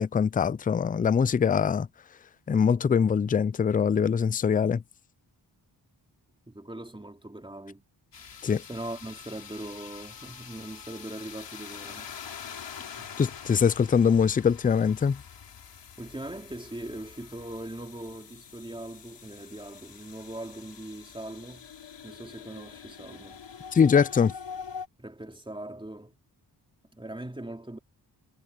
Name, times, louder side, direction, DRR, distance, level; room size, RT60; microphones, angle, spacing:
voice 1, 0.0-1.9 2.5-4.8 8.4-8.6 13.2-15.2 23.7-24.3, left 6 dB, 20° left, 0.3 m, -23 dB
voice 2, 6.5-7.8 8.7-12.1 13.0-13.1 16.0-21.7 22.0-23.4 25.0-26.1 26.9-27.8, right 1 dB, 10° right, 3.0 m, -40 dB
sound 1, 8.1-24.9, left 7 dB, 80° left, 4.5 m, -45 dB
wide cardioid pair, 95°, 42 cm